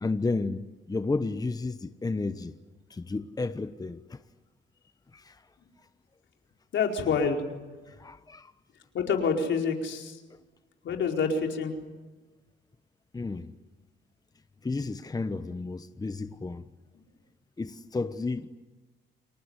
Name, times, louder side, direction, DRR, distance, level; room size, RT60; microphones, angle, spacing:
voice 1, 0.0-2.5 2.9-4.2 5.1-5.4 7.9-8.5 13.1-13.5 14.6-16.7 17.6-18.5, left 3 dB, 20° left, 1.1 m, -32 dB
voice 2, 6.7-7.4 8.9-10.2 10.8-11.8, left 5 dB, 70° left, 4.6 m, -27 dB
30.0 x 20.0 x 9.8 m
cardioid pair, 90°, 20 cm